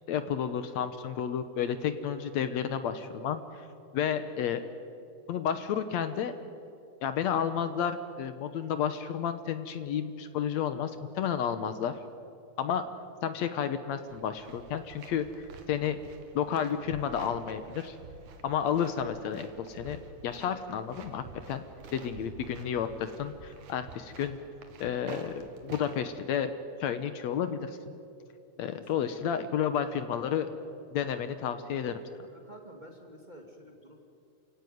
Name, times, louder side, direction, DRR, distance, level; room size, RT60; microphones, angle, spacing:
voice 1, 0.1-3.7 3.9-4.6 5.3-6.4 7.0-12.0 12.6-12.8 13.2-16.0 16.4-18.0 18.4-21.6 21.9-24.4 24.8-25.3 25.6-26.5 26.8-27.9 28.6-30.5 30.9-31.9, left 8 dB, 70° left, 10 dB, 2.1 m, -31 dB
sound 1, 14.1-26.2, right 4 dB, 80° right, 3.2 m, -49 dB
voice 2, 28.7-29.0 32.3-34.0, right 1 dB, 15° right, 2 dB, 2.2 m, -50 dB
28.5 x 16.5 x 9.4 m, 2.6 s
omnidirectional pair, 3.4 m